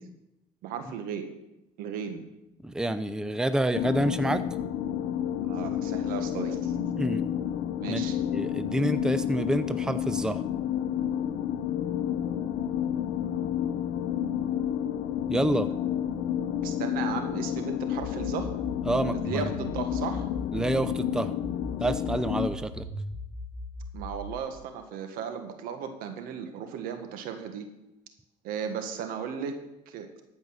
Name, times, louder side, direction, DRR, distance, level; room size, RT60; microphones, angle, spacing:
voice 1, 0.6-1.3 1.8-2.3 5.4-6.8 7.8-8.2 16.6-18.5 19.1-20.3 23.9-27.6 28.4-29.5 29.9-30.1, right 7 dB, 75° right, 6 dB, 1.6 m, -35 dB
voice 2, 2.6-4.4 7.0-7.3 7.9-8.1 8.3-10.4 15.3-15.7 18.9-19.5 20.5-21.3 21.8-22.9, right 1 dB, 5° right, 11 dB, 0.6 m, -28 dB
sound 1, 3.7-22.5, left 10 dB, 75° left, 0.8 m, -30 dB
sound 2, 18.0-21.0 21.4-24.4, left 1 dB, 30° right, 3.1 m, -38 dB
13.5 x 5.4 x 6.4 m, 0.90 s
supercardioid pair, 85°, 15 cm